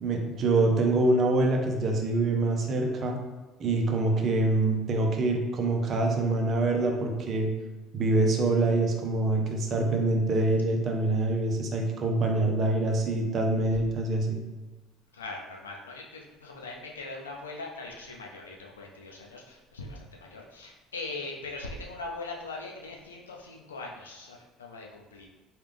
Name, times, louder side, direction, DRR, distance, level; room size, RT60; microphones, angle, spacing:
voice 1, 0.0-3.2 3.6-7.5 7.9-14.4, right 2 dB, 50° right, 2 dB, 0.6 m, -25 dB
voice 2, 15.1-25.3, left 3 dB, 90° left, -1 dB, 0.5 m, -41 dB
3.4 x 2.4 x 3.4 m, 1.2 s
hypercardioid pair, 65°, 0 cm